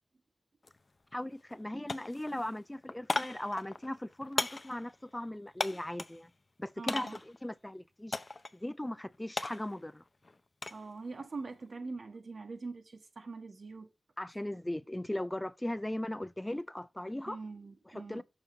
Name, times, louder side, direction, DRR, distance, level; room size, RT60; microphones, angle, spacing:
sound 1, 0.6-0.8 1.1-1.6 1.9-6.2 6.9-7.4 8.1-8.6 8.9-10.9 11.2-11.6, left 3 dB, 45° left, 0.7 m, -37 dB
voice 1, 1.1-6.3 6.6-8.2 8.5-10.0 14.2-17.4 17.9-18.2, left 1 dB, 15° left, 0.4 m, -38 dB
voice 2, 6.8-7.2 10.7-13.9 17.3-18.2, right 3 dB, 70° right, 1.5 m, -43 dB
7.1 x 5.5 x 3.2 m
cardioid pair, 50°, 0 cm